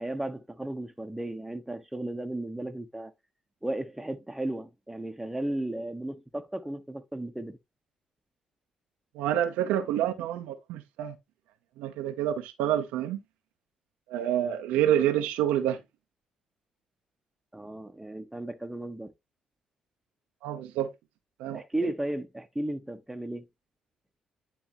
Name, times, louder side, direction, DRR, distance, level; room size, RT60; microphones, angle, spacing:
voice 1, 0.0-3.1 3.6-7.6 14.4-14.5 17.5-19.1 21.5-23.5, right 1 dB, 10° right, 1.1 m, -35 dB
voice 2, 9.1-11.2 11.8-13.2 14.1-15.8 20.4-20.9 21.4-21.6, right 11 dB, 85° right, 0.8 m, -28 dB
10.0 x 3.4 x 3.0 m
supercardioid pair, 50°, 2 cm